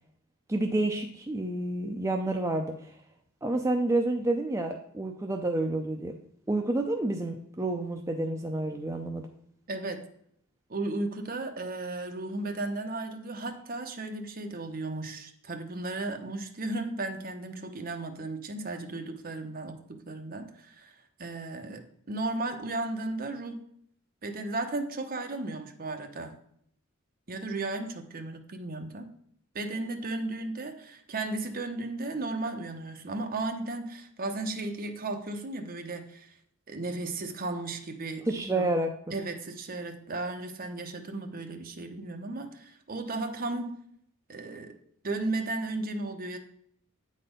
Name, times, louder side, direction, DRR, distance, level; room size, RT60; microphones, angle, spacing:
voice 1, 0.5-3.0 3.4-6.1 6.5-9.3 38.3-38.9, right 2 dB, 15° right, 2 dB, 0.5 m, -29 dB
voice 2, 9.7-10.1 10.7-23.6 24.2-26.4 27.3-29.1 29.5-36.3 36.7-38.7 39.1-43.7 44.3-44.8 45.0-46.4, right 2 dB, 45° right, 5 dB, 0.9 m, -35 dB
8.9 x 4.2 x 5.1 m, 0.68 s
head